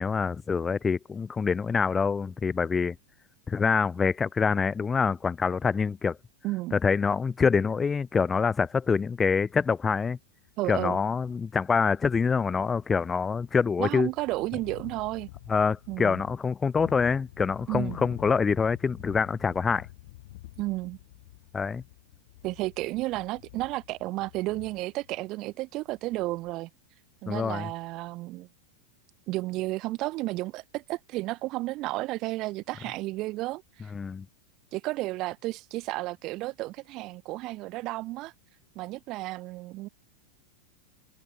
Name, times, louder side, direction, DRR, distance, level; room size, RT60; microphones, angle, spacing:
voice 1, 0.0-3.0 3.5-6.2 6.7-10.2 10.7-14.1 15.5-19.9 21.5-21.8 27.3-27.7 33.9-34.2, left 5 dB, 15° left, 0.4 m, -26 dB
voice 2, 6.4-6.8 10.6-11.0 13.8-15.3 15.9-16.2 17.7-18.0 20.6-21.0 22.4-26.7 27.2-28.5 29.3-33.9 34.7-38.3 38.7-39.9, right 19 dB, 40° right, 1.7 m, -32 dB
sound 1, 8.7-9.7 10.1-10.2 10.5-10.6 11.3-11.4 11.6-25.2 25.8-26.5, left 17 dB, 55° left, 3.8 m, -48 dB
figure-of-eight pair, 90°, 0 cm